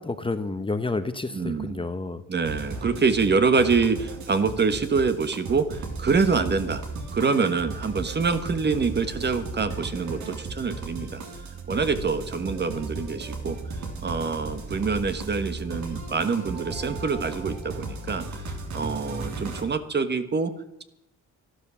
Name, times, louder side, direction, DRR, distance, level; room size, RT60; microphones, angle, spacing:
voice 1, 0.0-2.2, left 3 dB, 15° left, 10 dB, 1.0 m, -30 dB
voice 2, 1.3-1.8 2.3-6.8 7.1-11.2 11.7-13.6 14.0-20.5, right 4 dB, 35° right, 10 dB, 1.4 m, -25 dB
sound 1, 2.4-19.6, right 3 dB, 70° right, 3.1 m, -35 dB
12.5 x 12.0 x 7.1 m, 0.83 s
cardioid pair, 90°, 30 cm